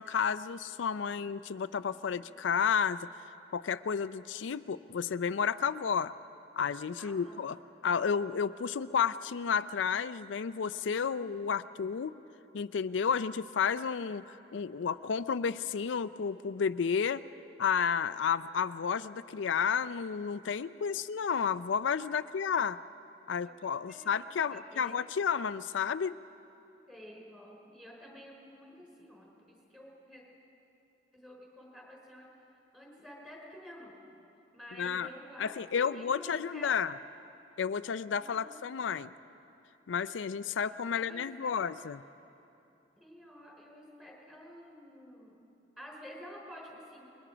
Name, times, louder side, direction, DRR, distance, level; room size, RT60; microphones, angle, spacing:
voice 1, 0.0-3.1 3.5-6.1 6.6-7.6 7.8-12.2 12.5-17.2 17.6-22.8 23.3-26.2 34.8-35.1 35.4-37.0 37.6-39.1 39.9-42.0, left 6 dB, 90° left, 13 dB, 0.4 m, -31 dB
voice 2, 1.9-2.2 7.0-7.5 22.1-22.5 23.4-23.5 23.9-24.2 24.5-25.0 26.9-30.2 31.1-32.3 32.7-34.0 34.5-36.7 38.1-38.6 40.9-41.6 43.0-45.4 45.8-47.1, equal, 5° right, -3 dB, 4.9 m, -51 dB
28.0 x 22.0 x 5.0 m, 2.8 s
head